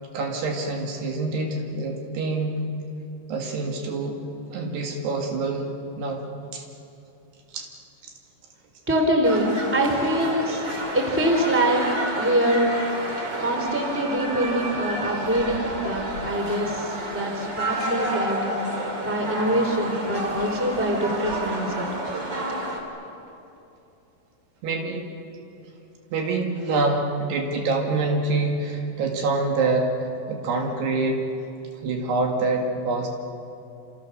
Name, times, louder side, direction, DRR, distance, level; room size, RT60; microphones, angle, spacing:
voice 1, 0.1-2.6 3.3-4.2 4.5-5.7 6.0-6.2 6.5-6.6 7.5-7.7 8.0-8.1 24.6-25.0 26.1-31.2 31.8-33.1, right 3 dB, 70° right, 2 dB, 4.0 m, -26 dB
voice 2, 8.9-10.6 10.9-11.8 12.2-12.7 13.4-18.5 19.0-21.9, right 1 dB, 5° right, 2 dB, 2.7 m, -24 dB
sound 1, 9.2-22.8, right 1 dB, 30° right, 3.1 m, -30 dB
28.5 x 28.0 x 6.6 m, 2.8 s
omnidirectional pair, 5.0 m